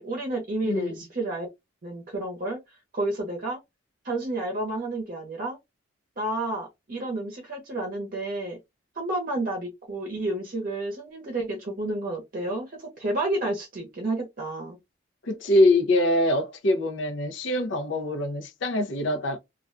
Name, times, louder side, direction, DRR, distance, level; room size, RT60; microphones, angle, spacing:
voice 1, 0.0-1.5 1.8-2.6 2.9-3.6 4.0-5.6 6.2-8.6 9.0-14.8, right 2 dB, 45° right, 0.7 m, -30 dB
voice 2, 0.6-1.0 15.2-19.4, left 1 dB, 75° left, 0.5 m, -24 dB
2.4 x 2.2 x 2.4 m
head